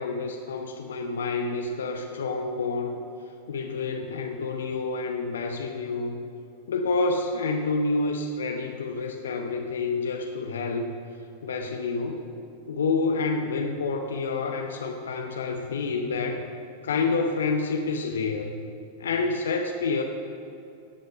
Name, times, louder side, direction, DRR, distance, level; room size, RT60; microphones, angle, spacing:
voice 1, 0.0-3.0 3.5-6.2 6.7-10.9 11.4-12.2 12.7-16.5 16.8-18.6 19.0-20.0, left 3 dB, 65° left, 3 dB, 0.9 m, -28 dB
17.0 x 7.9 x 6.1 m, 2.6 s
figure-of-eight pair, 90°, 0 cm